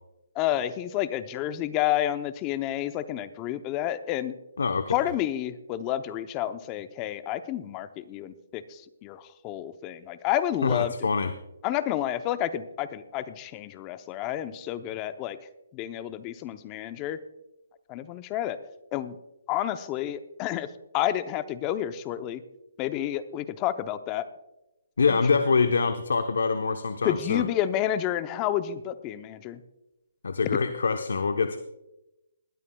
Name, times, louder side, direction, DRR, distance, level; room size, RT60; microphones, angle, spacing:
voice 1, 0.3-4.3 4.9-10.9 11.6-15.4 15.7-17.2 17.9-18.6 18.9-19.2 19.5-20.7 20.9-22.4 22.8-24.3 25.1-25.2 27.0-29.6, left 12 dB, 25° left, 12 dB, 0.7 m, -30 dB
voice 2, 4.6-5.1 10.6-11.3 25.0-27.4 30.2-31.6, left 4 dB, 80° left, 7 dB, 0.8 m, -25 dB
20.0 x 12.5 x 2.3 m, 0.93 s
hypercardioid pair, 155°, 0 cm